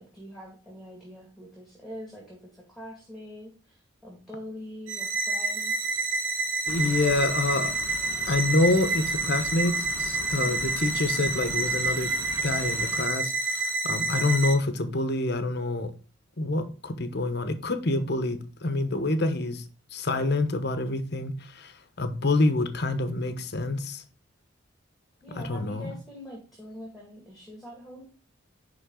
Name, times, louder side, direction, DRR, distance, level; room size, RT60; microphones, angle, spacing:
voice 1, 0.0-5.7 10.4-10.6 25.2-28.0, left 1 dB, ahead, 2.1 m, -44 dB
sound 1, 4.9-14.5, right 3 dB, 75° right, 1.6 m, -28 dB
sound 2, 6.7-13.1, left 4 dB, 80° left, 0.6 m, -41 dB
voice 2, 6.7-7.7 8.3-12.1 12.4-15.9 16.4-24.0 25.4-25.9, left 2 dB, 55° left, 1.1 m, -27 dB
10.5 x 3.8 x 3.8 m
head